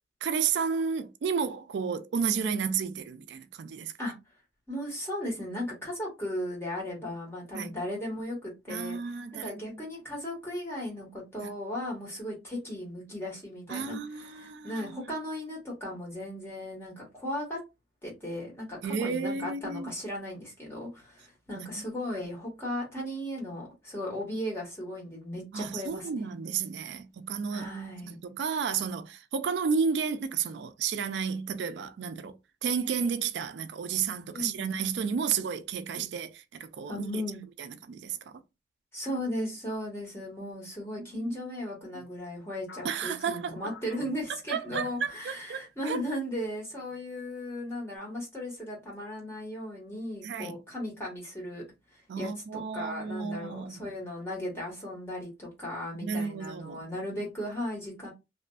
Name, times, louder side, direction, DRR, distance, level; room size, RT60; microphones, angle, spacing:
voice 1, 0.2-3.9 7.5-7.7 8.7-9.8 11.4-11.5 13.7-15.1 18.8-19.9 21.6-21.7 25.5-27.7 28.1-32.4 32.6-37.2 37.6-38.4 41.0-41.5 41.9-42.0 42.8-43.6 44.5-46.0 50.2-50.6 52.1-53.9 56.0-56.9, right 6 dB, 85° right, 0.3 m, -32 dB
voice 2, 4.7-9.0 9.3-17.6 18.0-26.1 27.5-28.2 34.3-34.7 35.9-36.1 36.9-37.4 38.9-51.6 51.9-52.3 52.7-58.1, left 1 dB, 15° left, 1.2 m, -36 dB
sound 1, 42.7-45.5 45.8-46.1 46.7-47.2, left 2 dB, 80° left, 0.6 m, -49 dB
2.6 x 2.5 x 2.2 m
head